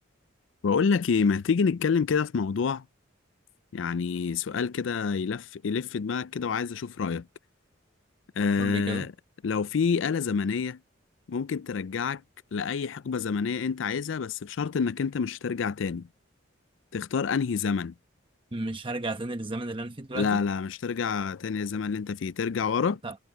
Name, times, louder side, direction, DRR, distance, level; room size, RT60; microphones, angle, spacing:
voice 1, 0.6-2.9 3.7-7.3 8.4-9.1 9.4-10.8 11.3-12.2 12.5-16.1 16.9-17.9 20.1-23.0, left 5 dB, 75° left, 0.4 m, -27 dB
voice 2, 8.6-9.1 18.5-20.4 23.0-23.2, right 2 dB, 25° right, 1.0 m, -33 dB
head